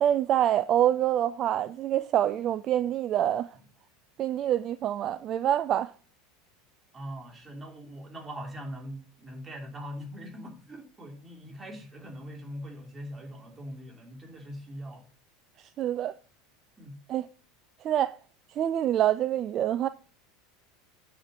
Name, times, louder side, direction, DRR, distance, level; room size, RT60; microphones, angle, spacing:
voice 1, 0.0-3.5 4.2-5.9 15.8-16.1 17.1-17.3 17.8-18.2 18.6-19.9, right 11 dB, 40° right, 0.4 m, -26 dB
voice 2, 6.9-15.0 16.8-17.0, equal, 15° right, 2.9 m, -42 dB
8.8 x 4.5 x 6.3 m
figure-of-eight pair, 80°, 0 cm